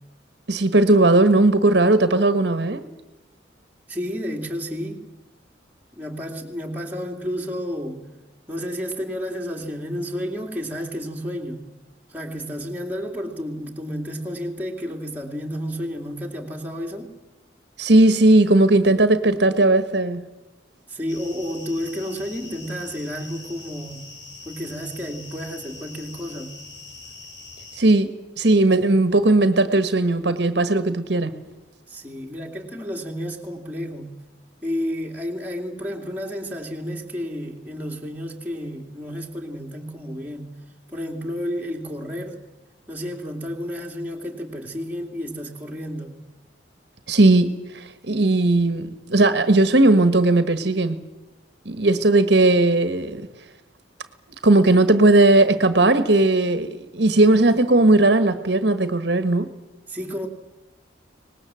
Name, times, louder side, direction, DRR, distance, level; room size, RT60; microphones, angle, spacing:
voice 1, 0.5-2.8 17.8-20.2 27.8-31.3 47.1-51.0 51.6-53.3 54.4-59.5, right 2 dB, 65° right, 1.4 m, -17 dB
voice 2, 3.9-5.0 5.9-8.1 8.5-11.6 12.1-17.1 20.9-24.1 24.4-26.6 31.9-34.2 34.6-40.6 40.9-42.4 42.9-46.2 59.9-60.3, equal, 10° right, 2.7 m, -31 dB
sound 1, 21.1-27.8, left 3 dB, 75° left, 4.5 m, -42 dB
24.5 x 20.0 x 7.7 m
head